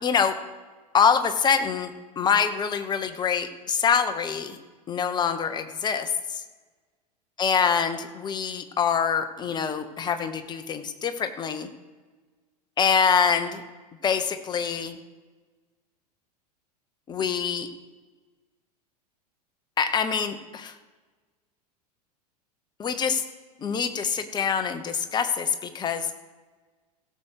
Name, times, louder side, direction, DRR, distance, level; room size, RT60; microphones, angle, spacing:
voice 1, 0.0-0.3 0.9-4.6 4.9-6.4 7.4-11.7 12.8-13.6 14.0-15.0 17.1-17.7 19.8-20.7 22.8-23.2 23.6-26.1, left 6 dB, 20° left, 9 dB, 1.0 m, -25 dB
16.0 x 6.9 x 4.8 m, 1.3 s
figure-of-eight pair, 85°, 21 cm